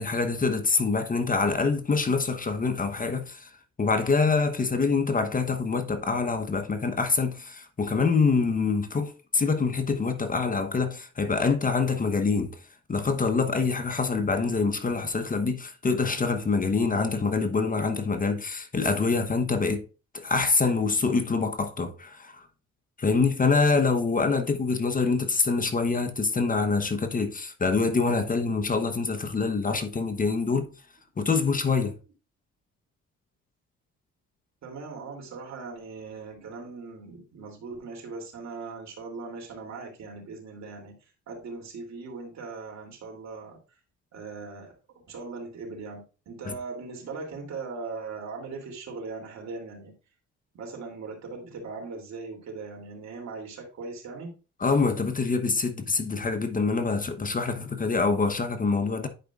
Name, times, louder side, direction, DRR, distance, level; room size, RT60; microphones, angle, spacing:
voice 1, 0.0-3.5 3.8-12.6 12.9-19.8 20.1-22.5 23.0-30.7 31.2-32.0 46.5-46.6 54.6-59.1, left 4 dB, 30° left, 1.0 m, -25 dB
voice 2, 34.6-40.9 41.3-43.6 44.1-49.9 50.5-54.4, right 4 dB, 65° right, 3.0 m, -39 dB
10.5 x 5.1 x 2.4 m
cardioid pair, 90°, 30 cm